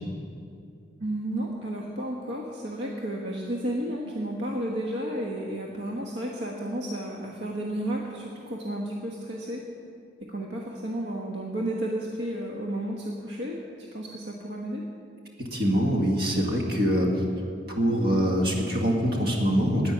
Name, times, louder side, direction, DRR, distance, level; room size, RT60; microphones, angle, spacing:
voice 1, 1.0-9.6 10.2-13.6 13.9-14.8, right 1 dB, 70° right, -1 dB, 1.2 m, -32 dB
voice 2, 15.4-17.2 17.7-19.9, equal, 55° right, 0 dB, 2.1 m, -24 dB
10.0 x 8.7 x 9.8 m, 2.3 s
head